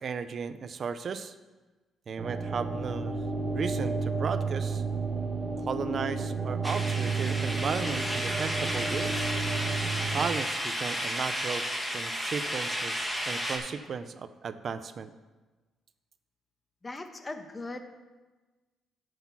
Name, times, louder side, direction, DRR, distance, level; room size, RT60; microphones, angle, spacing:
voice 1, 0.0-1.3 2.1-3.2 3.5-4.8 5.7-9.3 10.1-11.6 11.9-15.1, right 6 dB, 50° right, 12 dB, 0.6 m, -35 dB
sound 1, 2.2-10.3, right 4 dB, 35° right, 1.2 m, -31 dB
sound 2, 6.6-13.6, equal, ahead, 1.5 m, -33 dB
voice 2, 16.8-17.8, left 2 dB, 25° left, 7 dB, 1.0 m, -39 dB
8.0 x 6.5 x 5.8 m, 1.2 s
cardioid pair, 90°, 0 cm